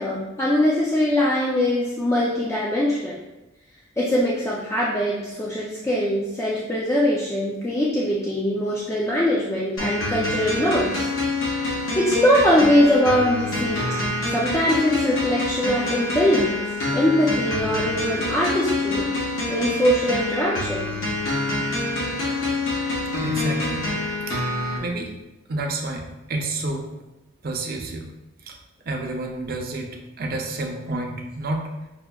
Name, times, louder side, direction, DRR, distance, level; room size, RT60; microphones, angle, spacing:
voice 1, 0.0-3.2 4.0-11.1 11.7-14.0 14.3-16.6 16.9-19.1 19.5-20.9, equal, 15° left, -6 dB, 0.3 m, -22 dB
sound 1, 9.8-24.8, left 2 dB, 90° left, 0.8 m, -26 dB
voice 2, 23.2-23.9 24.3-24.4 24.8-25.2 25.5-26.9 27.4-28.1 28.4-28.6 28.9-31.7, right 2 dB, 45° right, 2 dB, 0.5 m, -29 dB
5.7 x 2.0 x 2.2 m, 0.98 s
head